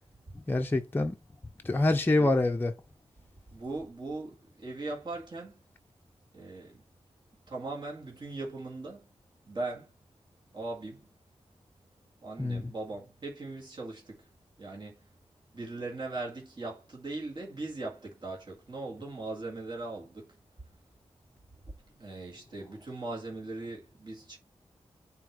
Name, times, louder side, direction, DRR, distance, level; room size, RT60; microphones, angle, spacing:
voice 1, 0.3-1.2 1.6-2.8 12.4-12.7, left 2 dB, 20° left, 0.5 m, -26 dB
voice 2, 3.5-5.5 6.3-6.8 7.5-9.0 9.5-9.9 10.5-11.0 12.2-14.2 14.6-15.0 15.5-20.3 22.0-24.4, right 2 dB, 40° right, 2.0 m, -39 dB
7.5 x 2.8 x 4.8 m
wide cardioid pair, 115°, 11 cm